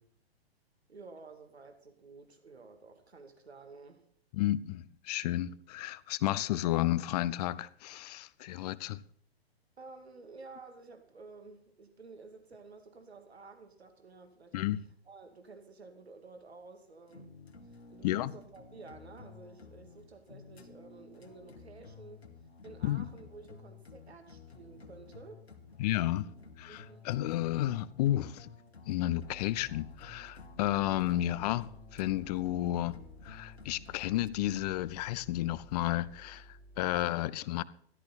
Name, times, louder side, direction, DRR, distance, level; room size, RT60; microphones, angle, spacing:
voice 1, 0.9-4.0 9.8-14.6 15.1-17.3 17.6-22.3 22.6-25.4 26.6-27.1, right 4 dB, 80° right, 2.5 m, -52 dB
voice 2, 4.3-9.0 14.5-14.8 18.0-18.3 22.8-23.1 25.8-26.3 26.6-28.5 28.9-33.0 33.2-37.6, left 14 dB, 40° left, 0.7 m, -32 dB
sound 1, 17.1-34.3, left 4 dB, 85° left, 2.2 m, -53 dB
sound 2, 29.1-37.1, right 1 dB, 5° right, 1.0 m, -55 dB
13.5 x 13.5 x 4.2 m
figure-of-eight pair, 115°, 31 cm